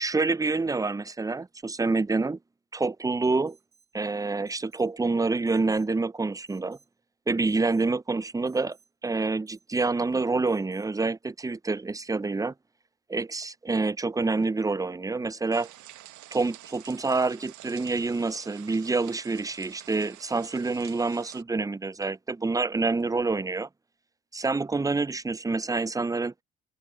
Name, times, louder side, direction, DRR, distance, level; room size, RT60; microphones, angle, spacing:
voice 1, 0.0-2.4 2.7-3.6 3.9-6.8 7.3-8.8 9.0-12.5 13.1-15.7 16.3-23.7 24.3-26.3, right 3 dB, 10° right, 0.6 m, -27 dB
Alarm, 3.5-3.9 4.5-4.9 5.5-5.9 6.5-6.9 7.5-7.9 8.5-8.9 9.5-9.9 10.5-10.9, right 6 dB, 35° right, 4.3 m, -63 dB
sound 1, 15.5-21.4, right 14 dB, 55° right, 1.8 m, -48 dB
hypercardioid pair, 55°, 36 cm